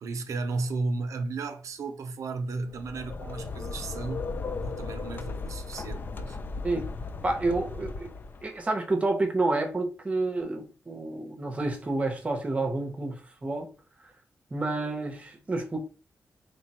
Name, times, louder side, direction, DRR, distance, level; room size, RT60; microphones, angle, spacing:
voice 1, 0.0-4.3 4.6-6.7, right 3 dB, 90° right, 0.6 m, -34 dB
sound 1, 2.6-8.6, left 4 dB, 40° left, 0.3 m, -36 dB
voice 2, 7.2-8.1 8.4-13.7 14.5-15.8, right 2 dB, 25° right, 0.7 m, -29 dB
3.2 x 2.2 x 4.1 m
wide cardioid pair, 150°, 5 cm